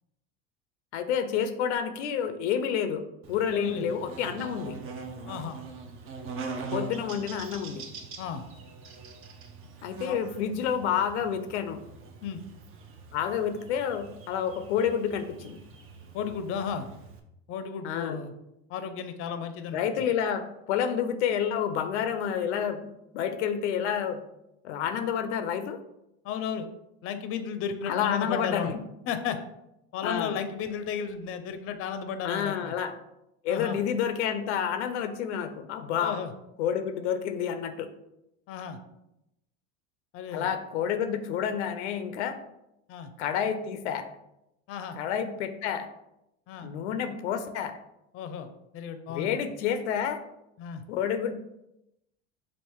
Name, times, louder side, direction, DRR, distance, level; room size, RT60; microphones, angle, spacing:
voice 1, 0.9-4.8 6.7-7.8 9.8-11.8 13.1-15.6 17.8-18.2 19.7-24.2 24.6-25.8 27.9-28.8 30.0-30.3 32.2-32.9 33.4-36.2 36.6-37.9 40.3-42.4 43.2-44.1 45.0-45.9 46.6-47.8 49.1-50.2 50.9-51.3, left 8 dB, 90° left, 10 dB, 0.5 m, -29 dB
Buzz, 3.2-17.2, right 4 dB, 40° right, 0.6 m, -43 dB
voice 2, 3.5-3.9 5.3-5.6 8.2-8.4 10.1-10.2 12.2-12.4 16.1-16.9 17.5-18.3 18.7-19.8 26.2-26.7 27.0-28.7 29.1-29.4 29.9-32.7 33.5-33.8 36.0-36.3 38.5-38.8 40.1-40.5 42.9-43.1 44.7-45.0 46.5-46.7 48.1-48.5 48.7-49.4 50.6-50.8, left 7 dB, 40° left, 9 dB, 0.5 m, -34 dB
3.5 x 2.5 x 4.5 m, 0.86 s
supercardioid pair, 115°, 33 cm